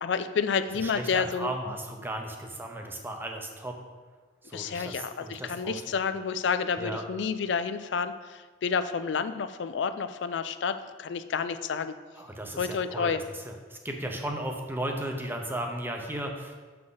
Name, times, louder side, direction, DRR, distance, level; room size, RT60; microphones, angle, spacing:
voice 1, 0.0-1.5 4.5-12.0 12.6-13.2, left 6 dB, 70° left, 11 dB, 0.4 m, -30 dB
voice 2, 0.7-3.8 4.4-6.0 6.8-7.0 12.2-16.5, right 1 dB, 10° right, 3 dB, 0.7 m, -35 dB
6.3 x 5.9 x 3.9 m, 1.4 s
head